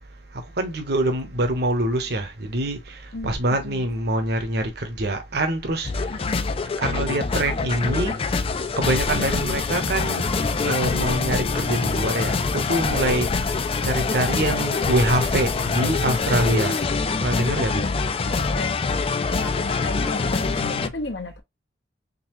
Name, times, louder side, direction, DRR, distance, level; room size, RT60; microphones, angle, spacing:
voice 1, 0.3-5.9 6.8-8.2 8.8-10.3 10.6-13.5 13.8-16.8 17.2-17.8 20.6-20.9, right 1 dB, 65° right, 1.1 m, -25 dB
voice 2, 3.1-3.8 6.1-6.5 9.1-9.3 13.3-13.5 17.7-18.8 19.3-21.4, left 2 dB, 70° left, 1.0 m, -34 dB
sound 1, 5.8-20.9, left 4 dB, 30° left, 0.4 m, -25 dB
4.0 x 3.5 x 3.0 m
head